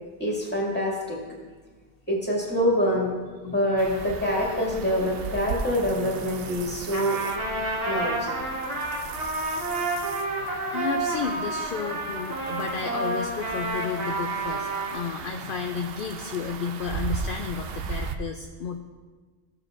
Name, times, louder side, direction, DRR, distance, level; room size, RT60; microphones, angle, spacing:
voice 1, 0.2-1.2 2.1-3.1 3.4-7.6 7.8-8.3, equal, 10° left, -4 dB, 2.2 m, -26 dB
sound 1, 3.8-18.2, right 6 dB, 70° right, 0.8 m, -37 dB
Trumpet, 6.9-15.0, right 2 dB, 90° right, 2.0 m, -30 dB
voice 2, 7.8-8.2 9.5-9.7 10.7-18.8, left 6 dB, 60° left, 4 dB, 0.7 m, -32 dB
14.5 x 7.5 x 2.6 m, 1.4 s
omnidirectional pair, 1.1 m